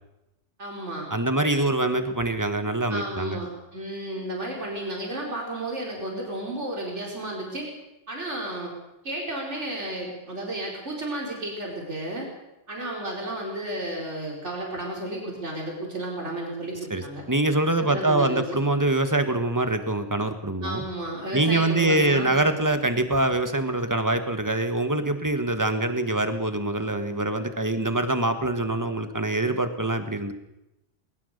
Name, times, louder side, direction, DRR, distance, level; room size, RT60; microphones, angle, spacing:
voice 1, 0.6-1.1 2.9-7.7 8.1-8.7 9.0-12.3 12.7-17.2 17.8-18.6 20.6-22.4, right 1 dB, 75° right, -1 dB, 5.1 m, -33 dB
voice 2, 1.1-3.4 16.9-17.0 17.3-20.8 21.3-30.3, right 2 dB, 15° right, 8 dB, 1.6 m, -24 dB
20.5 x 20.0 x 6.7 m, 0.91 s
omnidirectional pair, 1.2 m